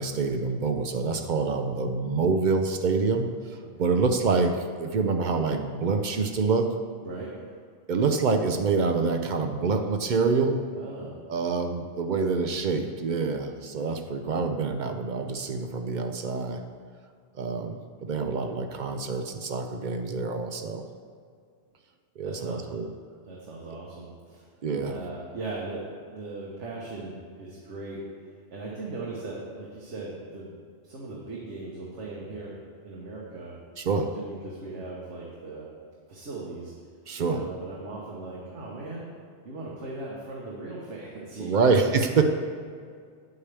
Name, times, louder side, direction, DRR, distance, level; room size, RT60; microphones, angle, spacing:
voice 1, 0.0-6.7 7.9-10.6 11.3-16.6 17.3-20.8 22.2-22.9 24.6-25.0 33.8-34.1 37.1-37.4 41.4-42.2, right 4 dB, 55° right, 6 dB, 0.6 m, -26 dB
voice 2, 3.6-4.0 7.0-7.3 10.7-11.2 22.2-22.7 23.2-24.5 24.8-28.0 28.5-30.6 30.8-33.5 33.9-35.7 36.1-36.7 37.2-39.0 39.4-41.7, right 3 dB, 80° right, -4 dB, 1.4 m, -38 dB
8.5 x 8.0 x 3.4 m, 2.1 s
omnidirectional pair, 1.2 m